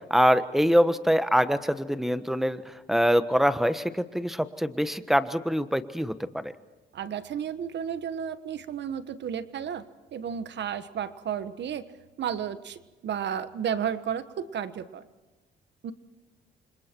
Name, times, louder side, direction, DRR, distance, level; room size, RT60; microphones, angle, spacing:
voice 1, 0.1-6.5, equal, ahead, 11 dB, 1.3 m, -24 dB
voice 2, 6.9-9.8 10.1-11.8 12.2-15.0 15.8-15.9, right 8 dB, 60° right, 12 dB, 1.4 m, -32 dB
29.5 x 26.0 x 4.6 m, 1.2 s
cardioid pair, 90°, 20 cm